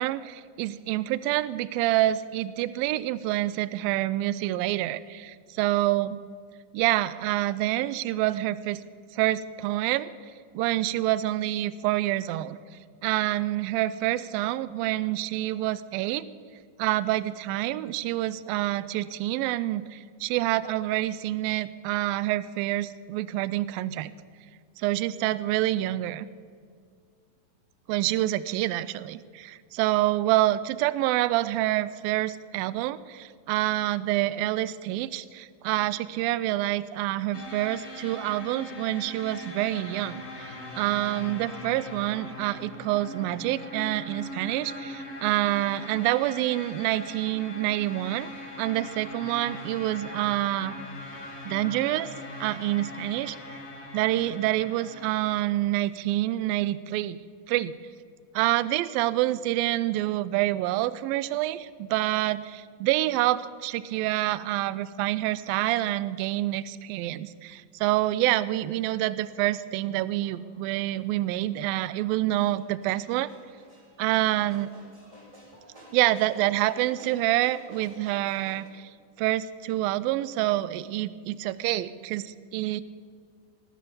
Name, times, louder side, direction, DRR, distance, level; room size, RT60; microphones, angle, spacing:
voice 1, 0.0-6.2 6.7-8.8 9.1-10.1 10.5-12.6 13.0-16.3 16.8-24.1 24.8-26.3 27.9-48.3 48.6-50.7 51.5-52.1 52.4-53.6 53.9-57.2 57.5-57.7 58.3-73.3 74.0-74.7 75.9-78.9 79.2-82.8, right 15 dB, 85° right, 17 dB, 2.3 m, -27 dB
sound 1, 37.3-55.5, left 1 dB, 40° left, 0.9 m, -41 dB
sound 2, 68.9-78.7, right 1 dB, 10° right, 2.7 m, -53 dB
18.5 x 13.0 x 5.4 m, 2.1 s
omnidirectional pair, 4.2 m